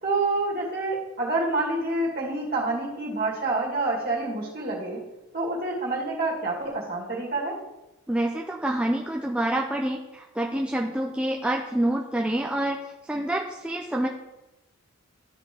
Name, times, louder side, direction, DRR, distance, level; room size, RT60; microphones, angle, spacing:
voice 1, 0.0-5.0 5.3-7.6, right 2 dB, 45° right, -3 dB, 2.3 m, -27 dB
voice 2, 8.1-12.8 13.0-14.1, right 1 dB, 5° right, 0 dB, 0.4 m, -27 dB
12.0 x 5.3 x 3.3 m, 1.0 s
head